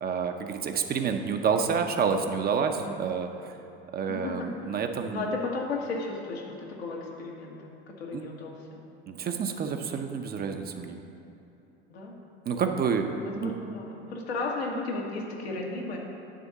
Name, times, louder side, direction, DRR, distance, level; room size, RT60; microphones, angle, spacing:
voice 1, 0.0-3.5 3.9-5.2 8.1-8.3 9.1-11.0 12.5-13.1 13.3-13.5, right 6 dB, 30° right, 5 dB, 0.7 m, -29 dB
voice 2, 4.1-8.8 11.9-12.1 13.0-16.0, left 3 dB, 80° left, -2 dB, 1.6 m, -35 dB
10.0 x 3.6 x 6.9 m, 2.9 s
hypercardioid pair, 75°, 31 cm